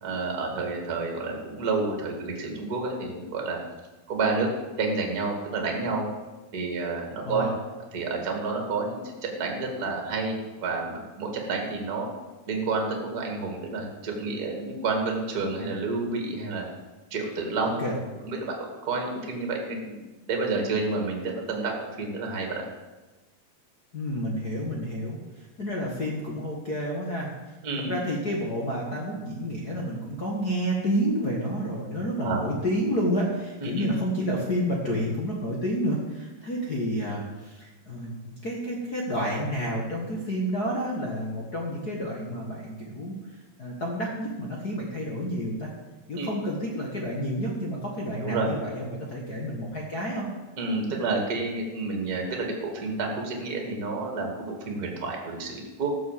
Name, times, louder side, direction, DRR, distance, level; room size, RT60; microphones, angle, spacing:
voice 1, 0.0-3.6 4.1-4.5 4.8-6.1 6.5-7.5 7.9-12.1 12.5-16.6 17.1-17.9 18.2-20.0 20.3-22.6 27.6-28.0 32.2-32.4 33.6-33.9 46.1-46.3 48.2-48.5 50.6-55.9, right 3 dB, 30° right, 1 dB, 2.4 m, -29 dB
voice 2, 23.9-27.3 27.8-38.1 38.4-43.1 43.6-45.7 46.1-50.3 50.8-51.0, equal, 40° left, -2 dB, 1.4 m, -30 dB
14.0 x 7.0 x 7.6 m, 1.2 s
omnidirectional pair, 4.1 m